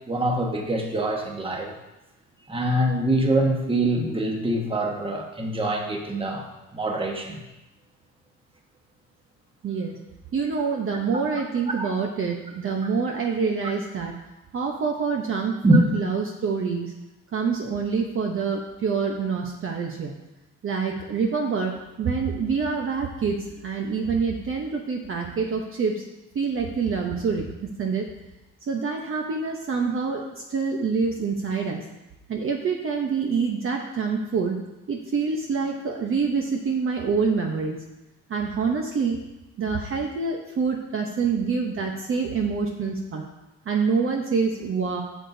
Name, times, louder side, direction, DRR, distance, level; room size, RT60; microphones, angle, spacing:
voice 1, 0.1-1.7 2.5-7.4 11.8-11.9 15.6-15.8, right 1 dB, 15° right, 2 dB, 1.3 m, -24 dB
voice 2, 9.6-9.9 10.3-14.1 14.5-16.9 17.3-20.1 20.6-21.7 22.0-26.0 26.3-27.5 27.8-28.0 28.6-30.2 30.5-31.8 32.3-34.6 34.9-37.8 38.3-39.2 39.6-43.2 43.7-45.0, right 5 dB, 40° right, 1 dB, 0.9 m, -26 dB
9.9 x 6.7 x 2.7 m, 0.99 s
cardioid pair, 100°, 32 cm